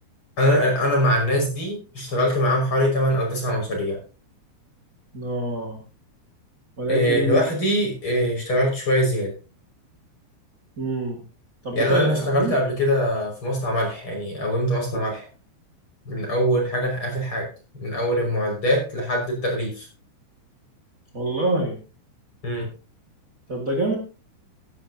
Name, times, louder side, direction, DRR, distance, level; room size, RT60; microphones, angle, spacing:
voice 1, 0.4-4.0 6.9-9.3 11.7-15.3 16.0-19.9 22.4-22.7, equal, 25° left, 0 dB, 6.1 m, -23 dB
voice 2, 5.1-5.8 6.8-7.4 10.8-11.2 11.6-12.5 21.1-21.8 23.5-23.9, right 1 dB, 60° right, 3 dB, 0.8 m, -25 dB
16.0 x 12.5 x 2.8 m, 0.34 s
omnidirectional pair, 5.3 m